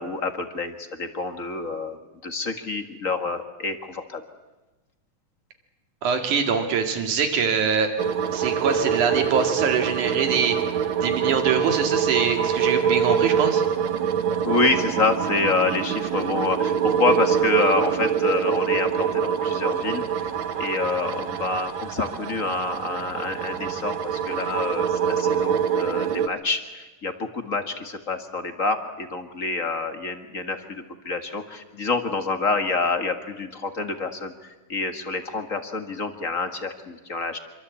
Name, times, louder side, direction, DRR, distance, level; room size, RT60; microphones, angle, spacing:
voice 1, 0.0-4.2 14.4-20.0 20.6-37.4, left 3 dB, 35° left, 7 dB, 1.7 m, -27 dB
voice 2, 6.0-7.9 8.3-10.6 11.0-13.6, right 6 dB, 85° right, 6 dB, 3.8 m, -23 dB
sound 1, 8.0-26.3, right 8 dB, 70° right, 2.4 m, -25 dB
27.0 x 24.5 x 8.5 m, 1.1 s
omnidirectional pair, 3.4 m